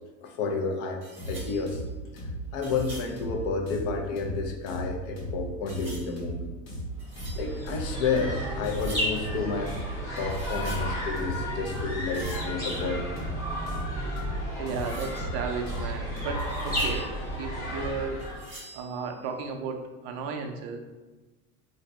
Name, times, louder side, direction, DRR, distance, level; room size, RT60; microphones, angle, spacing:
voice 1, 0.2-1.0 1.3-1.8 2.5-6.5 7.4-9.8 10.2-13.1, left 4 dB, 45° left, 2 dB, 0.5 m, -30 dB
sound 1, 1.0-4.2 4.5-5.2 5.7-8.3 8.6-9.3 9.7-11.3 11.6-13.6 13.9-14.0 14.3-14.4 14.7-17.9 18.2-19.7, right 1 dB, 15° right, 0.9 m, -47 dB
sound 2, 1.2-17.1, right 1 dB, 85° left, 1.3 m, -37 dB
sound 3, 7.0-18.6, equal, 10° left, 1.0 m, -33 dB
voice 2, 14.0-17.1 17.3-18.2 18.7-20.8, right 5 dB, 50° right, 4 dB, 0.4 m, -34 dB
2.6 x 2.1 x 4.0 m, 1.2 s
cardioid pair, 170°, 41 cm